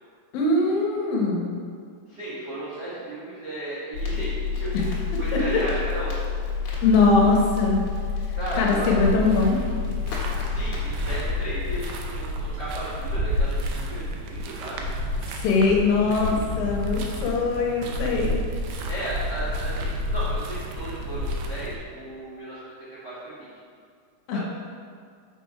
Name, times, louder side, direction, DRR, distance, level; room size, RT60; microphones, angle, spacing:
voice 1, 0.3-1.5 5.3-5.4 6.8-7.8 8.6-9.6 15.3-18.4 24.3-24.4, left 3 dB, 75° left, -1 dB, 2.5 m, -21 dB
voice 2, 2.1-6.2 8.3-9.0 10.4-14.9 18.9-23.5 24.3-24.4, right 2 dB, 60° right, -10 dB, 1.1 m, -35 dB
Crackle, 3.9-11.8, left 5 dB, 60° left, 2.2 m, -29 dB
sound 1, 9.0-21.8, left 1 dB, 90° right, 2.7 m, -30 dB
6.4 x 5.8 x 4.7 m, 2.1 s
omnidirectional pair, 4.4 m